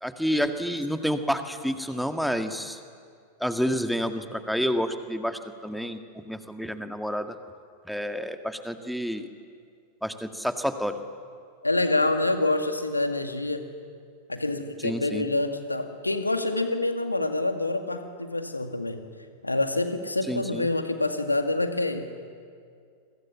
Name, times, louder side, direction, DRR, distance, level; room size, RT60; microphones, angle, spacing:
voice 1, 0.0-2.8 3.4-7.3 7.8-9.3 10.0-11.0 14.8-15.3 20.3-20.7, equal, ahead, 7 dB, 1.8 m, -29 dB
voice 2, 11.6-13.6 14.3-19.0 19.4-22.1, left 2 dB, 85° left, 7 dB, 2.1 m, -26 dB
28.0 x 23.5 x 7.5 m, 2.2 s
figure-of-eight pair, 90°, 0 cm